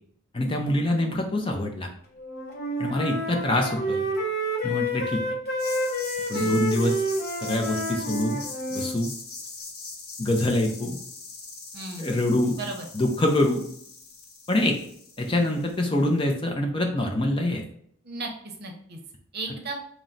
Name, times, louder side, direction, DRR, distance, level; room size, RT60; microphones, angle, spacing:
voice 1, 0.3-1.9 2.8-4.1 4.6-5.2 6.3-7.0 7.4-8.4 8.7-9.1 10.2-11.0 12.0-12.6 12.9-13.6 14.5-14.8 15.2-17.6, left 1 dB, 25° left, 2 dB, 0.4 m, -25 dB
Wind instrument woodwind instrument, 2.2-8.9, right 1 dB, 45° left, 0.8 m, -29 dB
sound 1, 5.6-16.1, left 4 dB, 85° left, 0.9 m, -41 dB
voice 2, 11.7-12.1 12.6-12.9 18.0-19.0 19.3-19.8, right 2 dB, 45° right, 2 dB, 0.7 m, -35 dB
4.4 x 2.0 x 3.8 m, 0.65 s
head